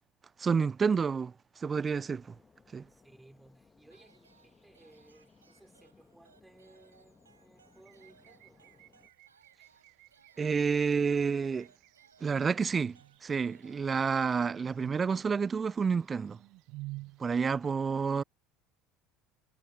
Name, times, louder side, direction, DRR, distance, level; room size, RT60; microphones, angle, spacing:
voice 1, 0.4-2.3 2.7-2.9 10.4-11.7 12.2-16.4 17.2-18.2, right 5 dB, 25° right, 0.4 m, -29 dB
sound 1, 1.8-9.1, left 4 dB, 25° left, 1.7 m, -64 dB
voice 2, 2.9-8.9 17.3-17.7, right 2 dB, 10° right, 5.4 m, -60 dB
sound 2, 3.9-15.0, right 5 dB, 85° right, 6.5 m, -66 dB
sound 3, 7.7-17.7, right 23 dB, 60° right, 0.8 m, -52 dB
figure-of-eight pair, 70°, 0 cm